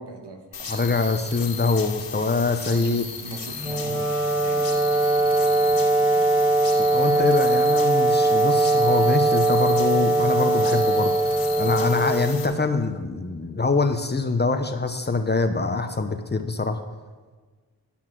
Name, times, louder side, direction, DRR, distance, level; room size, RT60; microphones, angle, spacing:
voice 1, 0.0-0.9 2.7-5.3, right 3 dB, 70° right, 3 dB, 1.7 m, -40 dB
sound 1, 0.5-12.5, left 6 dB, 55° left, 2.2 m, -36 dB
voice 2, 0.7-3.0 6.8-16.8, left 3 dB, 25° left, 7 dB, 1.0 m, -24 dB
Wind instrument woodwind instrument, 3.5-12.9, right 2 dB, 5° right, 2.1 m, -21 dB
12.5 x 5.8 x 6.1 m, 1.4 s
cardioid pair, 55°, 42 cm